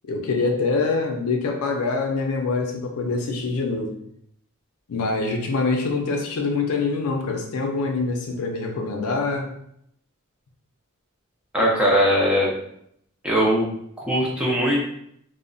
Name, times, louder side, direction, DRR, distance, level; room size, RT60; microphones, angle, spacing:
voice 1, 0.1-3.9 4.9-9.5, left 3 dB, 80° left, 2 dB, 0.5 m, -25 dB
voice 2, 11.5-12.5 13.2-13.7 14.1-14.8, equal, 5° right, -5 dB, 0.5 m, -20 dB
2.8 x 2.0 x 2.5 m, 0.72 s
head